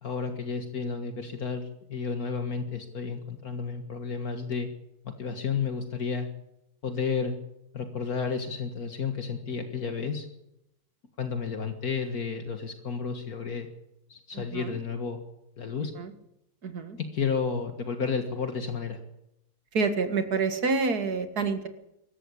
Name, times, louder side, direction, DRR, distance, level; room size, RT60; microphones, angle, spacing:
voice 1, 0.0-4.7 5.0-6.3 6.8-7.4 7.7-10.3 11.2-13.7 14.1-15.2 15.6-15.9 17.0-19.0, left 5 dB, 70° left, 5 dB, 2.2 m, -32 dB
voice 2, 14.3-14.8 16.0-16.1 16.6-17.0 19.7-21.7, right 4 dB, 80° right, 8 dB, 2.4 m, -28 dB
23.5 x 14.5 x 8.5 m, 0.86 s
omnidirectional pair, 1.6 m